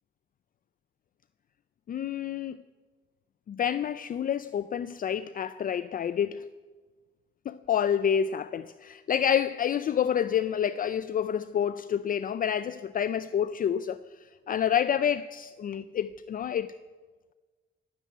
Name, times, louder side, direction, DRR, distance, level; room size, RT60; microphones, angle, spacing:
voice 1, 1.9-2.6 3.5-6.5 7.5-14.0 14.5-16.7, left 8 dB, 45° left, 0.5 m, -28 dB
17.0 x 7.5 x 9.2 m
cardioid pair, 90°, 20 cm